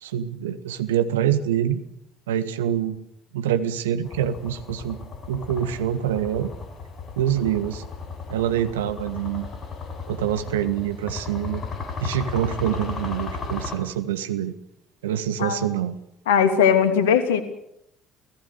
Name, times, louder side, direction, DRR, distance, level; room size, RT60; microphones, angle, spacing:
voice 1, 0.0-1.8 2.3-3.0 3.3-5.0 5.3-6.5 7.2-7.8 8.3-9.5 10.1-11.6 12.0-14.5 15.0-16.0, right 10 dB, 75° right, 11 dB, 1.5 m, -25 dB
sound 1, 4.0-13.8, left 4 dB, 40° left, 7.9 m, -35 dB
voice 2, 16.3-17.4, left 7 dB, 75° left, 9 dB, 2.9 m, -19 dB
29.5 x 18.0 x 6.7 m, 0.77 s
figure-of-eight pair, 55°, 0 cm